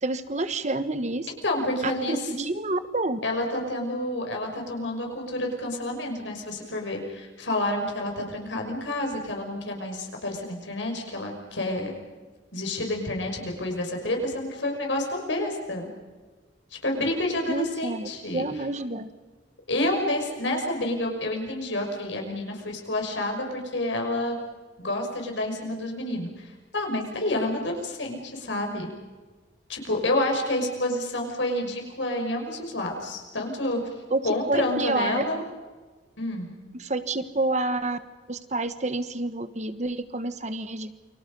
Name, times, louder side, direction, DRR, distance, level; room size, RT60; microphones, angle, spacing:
voice 1, 0.0-1.3 1.8-3.2 17.5-19.1 34.1-34.2 34.5-35.2 36.8-38.0 38.3-40.9, right 2 dB, 40° right, 11 dB, 1.4 m, -28 dB
voice 2, 1.4-2.3 3.2-11.9 12.5-15.9 16.8-18.4 19.7-24.4 24.8-28.9 29.7-33.8 34.2-35.4 36.2-36.5, left 1 dB, 85° left, 2 dB, 5.9 m, -29 dB
29.0 x 25.0 x 5.4 m, 1.3 s
head